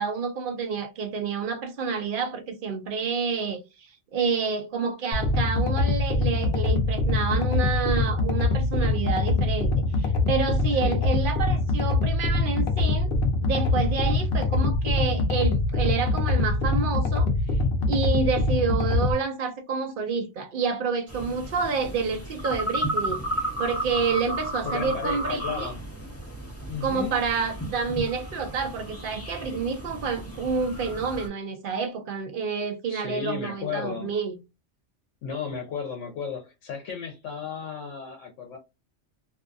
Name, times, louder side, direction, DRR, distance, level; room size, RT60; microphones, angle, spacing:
voice 1, 0.0-3.6 4.1-13.1 13.4-17.3 17.9-23.2 23.6-25.7 26.8-34.4, right 5 dB, 60° right, 0.6 m, -28 dB
sound 1, 5.1-19.1, left 3 dB, 60° left, 0.7 m, -24 dB
sound 2, 21.1-31.3, right 1 dB, 15° left, 0.7 m, -33 dB
voice 2, 24.6-25.8 26.7-27.2 32.9-34.1 35.2-38.6, left 6 dB, 80° left, 0.9 m, -34 dB
2.6 x 2.2 x 2.4 m
omnidirectional pair, 1.2 m